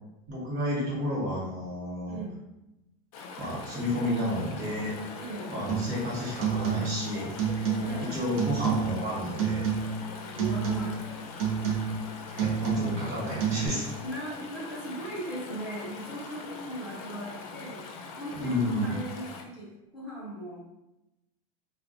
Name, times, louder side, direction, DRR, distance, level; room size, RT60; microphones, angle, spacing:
voice 1, 0.3-2.2 3.4-4.9 5.5-7.7 8.0-9.7 12.4-13.8 18.4-19.0, left 1 dB, 45° right, -6 dB, 1.1 m, -31 dB
Chatter / Stream, 3.1-19.4, left 4 dB, 75° left, 0.4 m, -42 dB
voice 2, 5.1-5.5 7.8-8.2 10.3-11.0 11.3-11.5 12.3-12.8 13.6-13.7 14.0-20.6, right 1 dB, 5° right, -8 dB, 0.7 m, -39 dB
sound 1, 5.7-6.0 6.4-7.1 7.4-8.1 8.4-9.0 9.4-10.1 10.4-11.0 11.4-12.1 12.4-13.1 13.4-13.7, right 7 dB, 70° right, 0.6 m, -29 dB
2.2 x 2.1 x 2.6 m, 0.91 s
supercardioid pair, 170°, 18 cm